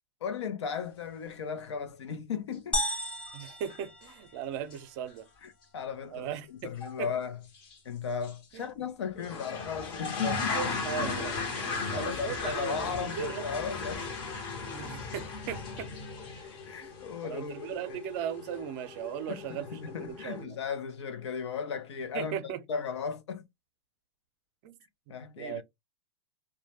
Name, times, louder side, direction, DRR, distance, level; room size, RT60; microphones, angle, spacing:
voice 1, 0.2-2.8 5.4-7.4 7.8-10.6 11.6-14.1 16.6-18.0 19.3-23.5 25.1-25.6, left 6 dB, 85° left, 0.6 m, -36 dB
sound 1, 2.7-4.7, left 1 dB, 10° left, 0.4 m, -34 dB
sound 2, 2.9-3.0 3.3-3.8 4.1-4.2 4.7-4.8 5.1-5.2 6.8-7.0 7.5-7.8 8.2-8.3 9.2-20.4, left 4 dB, 35° left, 0.7 m, -37 dB
voice 2, 3.3-5.3 6.1-6.7 7.0-7.1 8.5-8.7 10.2-13.5 14.7-15.9 17.2-19.7 20.1-20.6 22.1-22.6 24.6-24.8 25.4-25.6, right 9 dB, 45° right, 0.5 m, -38 dB
2.2 x 2.1 x 2.8 m
hypercardioid pair, 130°, 14 cm